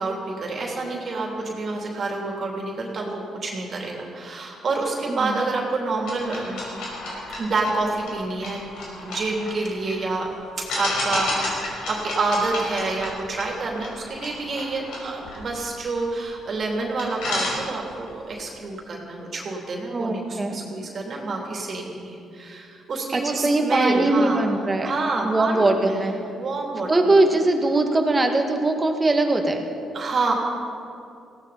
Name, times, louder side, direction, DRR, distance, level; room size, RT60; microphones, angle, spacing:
voice 1, 0.0-6.7 7.4-8.7 9.0-10.3 10.6-24.4 24.8-26.0 26.4-26.9 29.9-30.3, right 3 dB, 50° right, -1 dB, 3.1 m, -28 dB
voice 2, 5.1-5.4 19.9-20.6 23.1-24.9 25.2-26.1 26.9-29.6, right 2 dB, 25° right, 3 dB, 1.9 m, -21 dB
sound 1, 6.0-10.0 10.7-16.3 16.7-16.8 17.0-18.1, left 2 dB, 85° left, 5.1 m, -32 dB
18.5 x 16.5 x 4.2 m, 2.6 s
cardioid pair, 90°, 0 cm